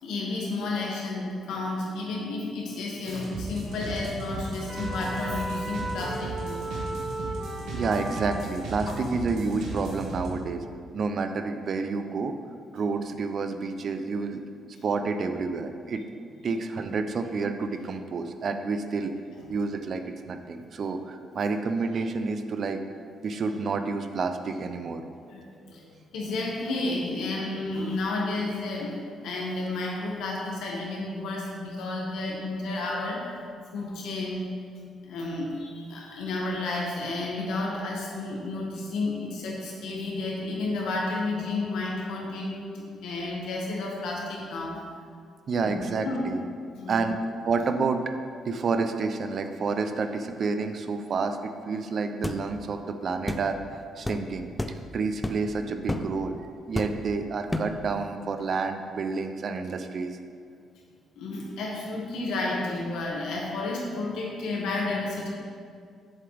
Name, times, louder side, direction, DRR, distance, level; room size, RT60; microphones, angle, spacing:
voice 1, 0.0-6.7 25.3-28.9 29.2-33.4 33.7-34.5 35.1-44.8 45.6-46.2 46.7-47.0 61.1-65.3, left 2 dB, 85° left, -2 dB, 1.7 m, -31 dB
sound 1, 3.1-10.3, right 2 dB, 85° right, 1.6 m, -36 dB
sound 2, 4.7-8.7, right 2 dB, 30° right, 1.6 m, -36 dB
voice 2, 7.7-10.6 10.9-12.4 12.7-14.4 14.8-16.0 16.4-19.1 19.5-22.8 23.2-25.0 45.5-46.4 46.9-48.1 48.4-53.6 54.0-56.4 56.7-60.2, right 4 dB, 55° right, 8 dB, 0.6 m, -29 dB
sound 3, 52.2-52.4 53.3-53.5 54.0-54.2 54.6-54.8 55.2-55.5 55.9-56.1 56.7-57.1 57.5-57.8, left 1 dB, 10° left, 0.5 m, -30 dB
7.8 x 7.4 x 3.5 m, 2.2 s
cardioid pair, 90°, 0 cm